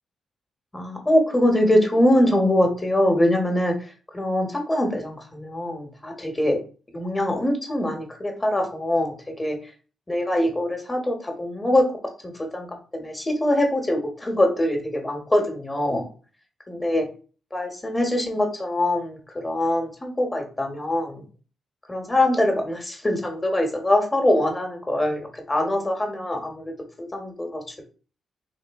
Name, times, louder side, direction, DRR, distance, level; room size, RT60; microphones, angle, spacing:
voice 1, 0.7-3.7 4.1-6.6 6.9-9.6 10.1-11.9 12.4-16.1 16.7-17.0 17.5-19.2 19.4-21.2 21.9-27.8, left 1 dB, 20° left, 3 dB, 1.2 m, -23 dB
3.3 x 2.6 x 3.5 m, 0.38 s
supercardioid pair, 55°, 0 cm